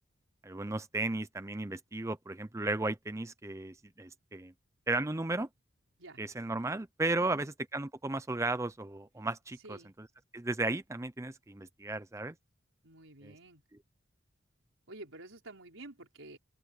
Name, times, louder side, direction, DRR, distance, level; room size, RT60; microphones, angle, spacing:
voice 1, 0.4-4.5 4.9-5.5 6.2-9.8 10.3-12.3 13.2-13.3, right 2 dB, 15° right, 0.6 m, -35 dB
voice 2, 12.8-13.6 14.9-16.4, right 2 dB, 90° right, 4.6 m, -50 dB
open air
head